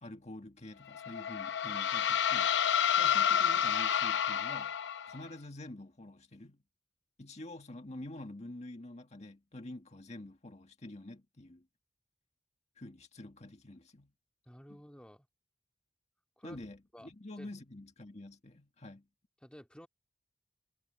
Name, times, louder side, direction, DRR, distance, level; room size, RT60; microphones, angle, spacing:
voice 1, 0.0-2.5 2.9-4.8 5.1-6.6 7.2-11.7 12.8-14.1 14.7-14.8 16.4-19.1, left 1 dB, 40° left, 1.8 m, -47 dB
sound 1, 0.9-5.2, left 8 dB, 75° left, 0.8 m, -29 dB
voice 2, 14.5-15.3 16.4-16.6 16.9-17.1 17.4-17.5 19.4-19.9, equal, 5° left, 2.3 m, -52 dB
head